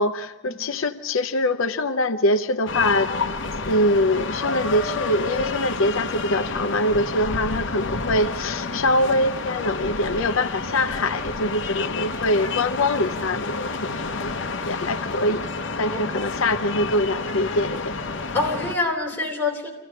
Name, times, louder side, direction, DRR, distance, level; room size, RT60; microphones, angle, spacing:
voice 1, 0.0-3.1 3.7-14.3 14.6-15.4 15.8-17.9, left 1 dB, 85° left, 10 dB, 0.7 m, -23 dB
sound 1, 2.7-18.7, left 4 dB, 65° left, 1.0 m, -29 dB
voice 2, 15.8-16.2 16.5-16.6 18.3-19.7, left 3 dB, 10° left, -2 dB, 3.2 m, -26 dB
26.5 x 15.5 x 7.7 m, 1.1 s
head